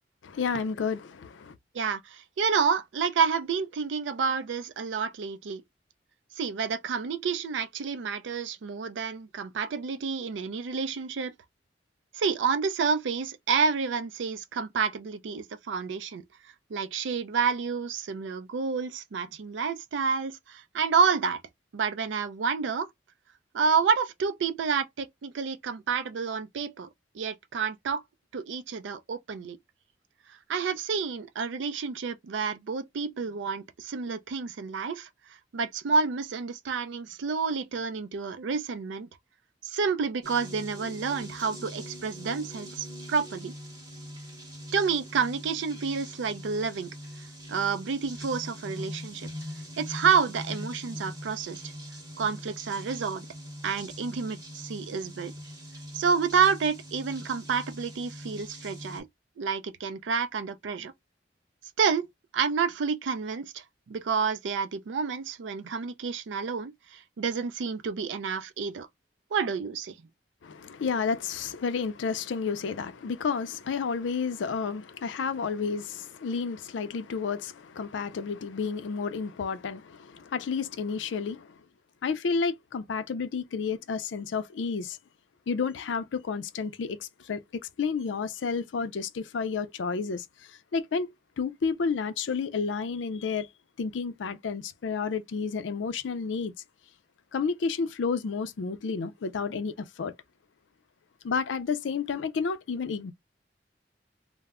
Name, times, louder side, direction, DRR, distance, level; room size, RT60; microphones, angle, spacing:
voice 1, 0.2-1.5 70.4-81.5 82.0-85.0 85.5-87.4 87.8-90.3 90.7-91.1 91.4-93.5 93.8-96.5 97.3-100.1 101.2-103.1, left 5 dB, 85° left, 0.4 m, -31 dB
voice 2, 1.7-5.6 6.4-11.3 12.1-16.2 16.7-21.4 21.7-22.9 23.5-26.9 27.1-28.0 28.3-29.6 30.5-35.1 35.5-39.1 39.6-43.5 44.7-46.9 47.5-49.3 49.8-51.6 52.2-53.3 53.6-55.3 55.9-59.1 59.4-60.9 61.8-62.1 62.3-68.9 69.3-70.0, right 5 dB, 80° right, 0.4 m, -29 dB
sound 1, 40.2-59.0, equal, 20° right, 0.8 m, -42 dB
2.1 x 2.0 x 3.5 m
head